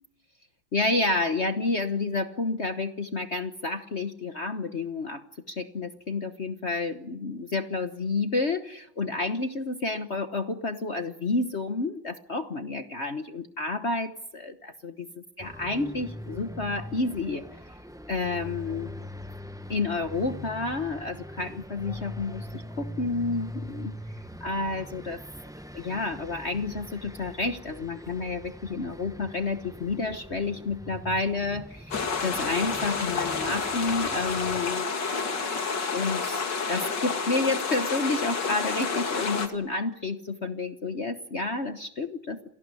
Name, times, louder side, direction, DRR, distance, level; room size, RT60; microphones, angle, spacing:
voice 1, 0.7-15.1 15.4-17.4 18.1-18.9 19.7-25.2 25.7-34.9 35.9-42.4, left 3 dB, 40° left, 9 dB, 1.2 m, -30 dB
sound 1, 15.4-34.7, equal, 5° right, 0.4 m, -42 dB
sound 2, 31.9-39.5, left 4 dB, 55° left, 2.9 m, -29 dB
28.0 x 18.0 x 9.8 m, 0.77 s
omnidirectional pair, 2.3 m